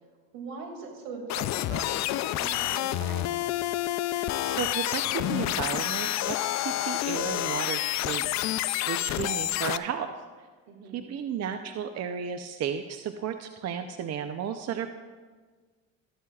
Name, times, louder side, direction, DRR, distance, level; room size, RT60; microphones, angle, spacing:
voice 1, 0.3-3.5 10.7-11.1, right 3 dB, 80° right, 3 dB, 2.4 m, -41 dB
sound 1, 1.3-9.8, left 14 dB, 55° left, 0.5 m, -29 dB
voice 2, 4.1-10.1 10.9-14.9, right 8 dB, 50° right, 8 dB, 0.7 m, -34 dB
13.5 x 12.0 x 2.4 m, 1.5 s
supercardioid pair, 85°, 34 cm